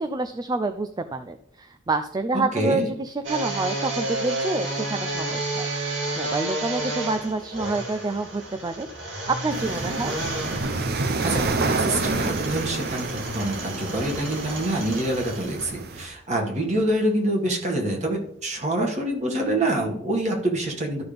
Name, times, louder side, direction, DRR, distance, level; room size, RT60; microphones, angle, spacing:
voice 1, 0.0-10.2, right 3 dB, 20° right, 8 dB, 0.4 m, -28 dB
voice 2, 2.3-2.9 11.2-21.0, right 1 dB, 40° right, 0 dB, 2.0 m, -26 dB
sound 1, 3.2-15.6 16.1-16.2 16.7-16.8, right 2 dB, 75° right, 2.5 m, -32 dB
sound 2, 9.5-16.0, right 3 dB, 55° right, 0.7 m, -28 dB
13.0 x 5.8 x 3.5 m, 0.69 s
head